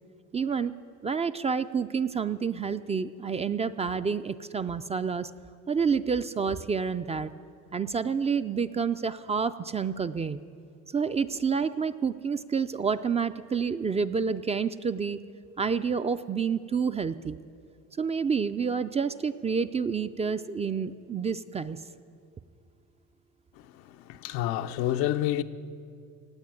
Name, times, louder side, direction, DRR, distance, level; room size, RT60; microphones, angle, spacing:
voice 1, 0.3-0.7 1.0-5.3 5.7-7.3 7.7-10.4 10.9-15.2 15.6-17.4 18.0-21.8, right 6 dB, 20° right, 0.3 m, -28 dB
voice 2, 23.6-25.4, left 13 dB, 85° left, 0.7 m, -29 dB
17.0 x 8.5 x 9.0 m
cardioid pair, 110°, 35 cm